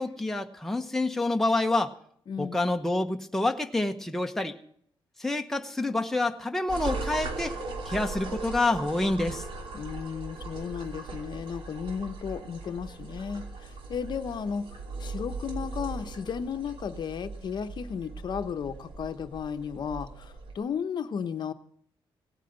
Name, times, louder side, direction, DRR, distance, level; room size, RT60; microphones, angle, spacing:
voice 1, 0.0-1.9 2.4-4.6 5.2-7.6 7.8-9.4, left 2 dB, 5° left, 4 dB, 0.9 m, -27 dB
voice 2, 2.3-2.6 9.7-14.6 15.0-21.5, left 7 dB, 50° left, 9 dB, 0.9 m, -34 dB
sound 1, 6.7-20.5, right 3 dB, 70° right, 3.0 m, -39 dB
17.5 x 9.1 x 7.9 m, 0.63 s
wide cardioid pair, 165°, 9 cm